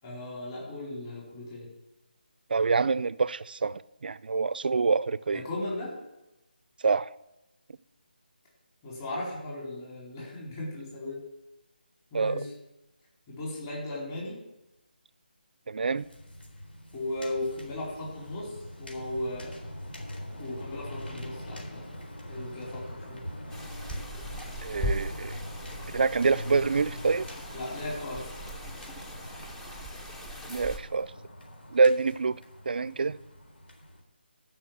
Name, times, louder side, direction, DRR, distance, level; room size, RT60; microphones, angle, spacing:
voice 1, 0.0-1.7 5.3-5.9 8.8-11.2 12.1-12.5 13.3-14.4 16.9-19.7 20.4-21.8 22.3-23.2 27.5-28.3, left 1 dB, 20° left, 4.5 m, -36 dB
voice 2, 2.5-5.4 6.8-7.1 12.1-12.4 15.7-16.1 24.6-25.4 25.9-27.3 30.5-31.1 31.7-32.4 32.7-33.2, right 4 dB, 60° right, 0.5 m, -26 dB
sound 1, 15.9-34.0, equal, 70° left, 3.8 m, -42 dB
sound 2, 23.5-30.8, equal, 5° left, 0.7 m, -39 dB
12.5 x 6.0 x 7.8 m
figure-of-eight pair, 165°, 6 cm